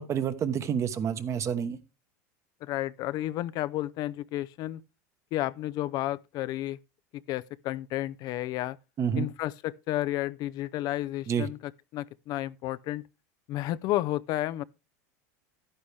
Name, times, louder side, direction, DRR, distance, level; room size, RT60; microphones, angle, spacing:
voice 1, 0.0-1.8 9.0-9.3 11.3-11.5, right 8 dB, 35° right, 1.1 m, -29 dB
voice 2, 2.6-4.8 5.3-6.8 7.1-8.8 9.1-13.0 13.5-14.6, left 15 dB, 50° left, 0.5 m, -32 dB
11.5 x 9.9 x 3.4 m
supercardioid pair, 105°, 9 cm